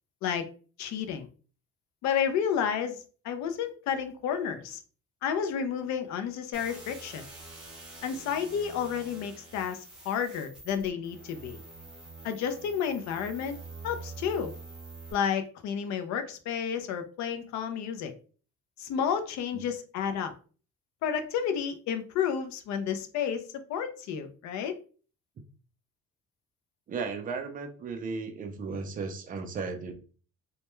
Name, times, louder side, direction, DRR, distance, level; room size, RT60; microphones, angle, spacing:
voice 1, 0.8-1.3 2.0-4.8 5.2-7.2 8.0-11.6 12.2-13.6 13.8-14.5 15.1-18.1 18.8-20.3 21.0-23.4 23.7-24.7, left 7 dB, 65° left, 8 dB, 0.5 m, -31 dB
sound 1, 6.5-15.1, right 3 dB, 5° right, 0.7 m, -46 dB
voice 2, 26.9-29.9, right 4 dB, 30° right, 5 dB, 0.4 m, -35 dB
2.2 x 2.1 x 2.9 m, 0.39 s
cardioid pair, 155°, 30 cm